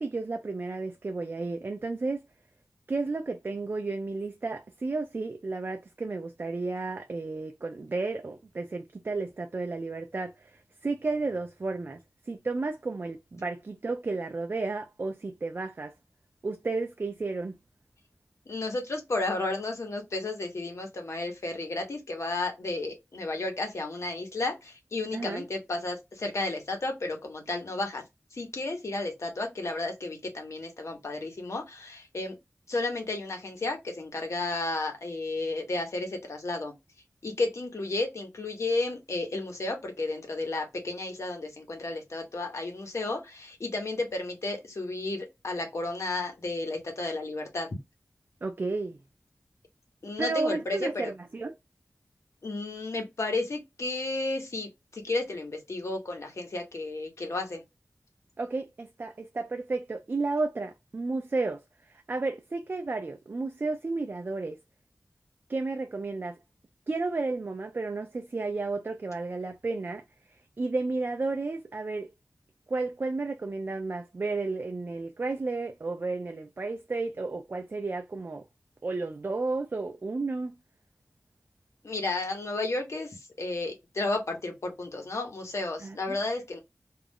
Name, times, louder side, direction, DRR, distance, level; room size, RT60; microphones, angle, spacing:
voice 1, 0.0-2.3 2.9-12.0 12.3-15.9 16.4-17.6 25.1-25.4 48.4-49.0 50.2-51.6 58.4-64.6 65.5-66.4 66.9-70.0 70.6-72.1 72.7-78.4 78.8-80.6 85.8-86.2, right 3 dB, 45° right, 0.3 m, -32 dB
voice 2, 18.5-28.0 28.3-32.4 32.7-36.7 37.2-47.7 50.0-51.1 52.4-57.6 81.8-86.6, left 2 dB, 70° left, 0.9 m, -32 dB
2.4 x 2.0 x 3.4 m
wide cardioid pair, 60°, 5 cm